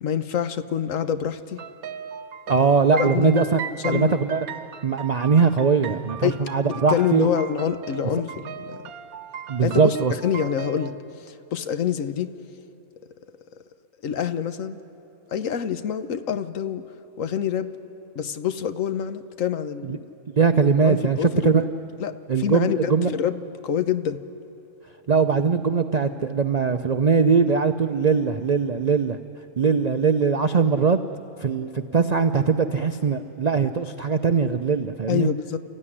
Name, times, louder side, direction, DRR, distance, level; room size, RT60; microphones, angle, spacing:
voice 1, 0.0-1.6 2.9-3.4 3.8-4.2 6.2-6.4 6.7-8.8 9.6-10.0 10.2-10.9 11.5-12.3 14.0-14.8 15.3-16.8 17.2-17.7 18.1-20.0 20.8-21.7 22.0-24.2 35.1-35.6, left 8 dB, 65° left, 11 dB, 1.2 m, -26 dB
sound 1, 1.6-10.9, right 8 dB, 75° right, 1.3 m, -37 dB
voice 2, 2.5-4.5 4.8-7.3 9.5-10.1 19.8-20.0 20.4-21.7 22.3-23.1 25.1-29.2 29.6-31.0 31.4-35.3, right 5 dB, 60° right, 8 dB, 0.4 m, -21 dB
29.5 x 14.5 x 9.9 m, 2.9 s
omnidirectional pair, 1.5 m